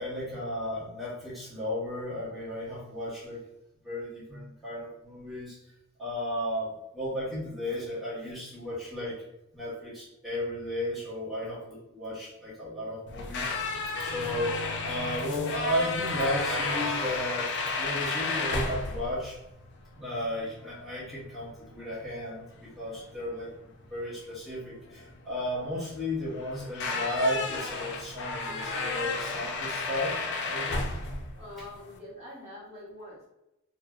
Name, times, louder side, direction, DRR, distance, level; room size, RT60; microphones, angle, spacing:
voice 1, 0.0-3.4 3.8-5.6 6.0-9.2 9.5-19.4 20.0-30.8, left 1 dB, ahead, -10 dB, 0.9 m, -34 dB
sound 1, 13.1-32.0, left 3 dB, 55° left, 0.3 m, -33 dB
voice 2, 31.4-33.3, left 1 dB, 30° right, -8 dB, 0.8 m, -44 dB
2.6 x 2.0 x 2.3 m, 0.90 s
head